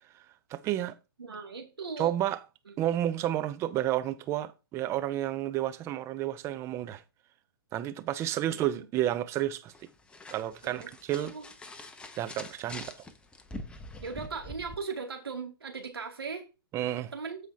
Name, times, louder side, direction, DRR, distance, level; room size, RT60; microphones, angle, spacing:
voice 1, 0.5-1.0 2.0-2.4 2.8-7.0 7.7-9.7 10.3-11.3 12.2-12.9 16.7-17.1, right 12 dB, 20° right, 0.6 m, -31 dB
voice 2, 1.2-2.2 2.7-2.8 8.5-8.9 10.6-10.9 11.3-11.4 14.0-16.5 17.1-17.4, right 5 dB, 80° right, 2.5 m, -38 dB
sound 1, 9.7-14.8, left 2 dB, 10° left, 0.8 m, -45 dB
14.0 x 4.9 x 2.8 m
figure-of-eight pair, 125°, 13 cm